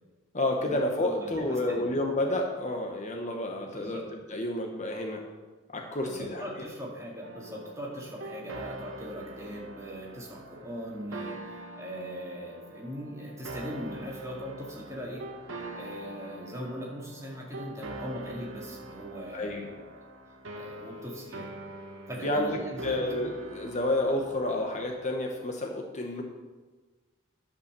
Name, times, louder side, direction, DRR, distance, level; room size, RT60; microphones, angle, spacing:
voice 1, 0.3-5.3 5.7-6.5 19.3-19.7 22.2-26.2, left 1 dB, 35° left, 2 dB, 1.0 m, -30 dB
voice 2, 1.0-1.9 3.7-4.0 6.0-15.3 15.7-20.0 20.5-21.5 22.1-23.1, equal, 15° right, -3 dB, 2.2 m, -40 dB
sound 1, 7.2-25.2, right 1 dB, 70° right, 1.0 m, -44 dB
11.0 x 5.6 x 6.8 m, 1.3 s
head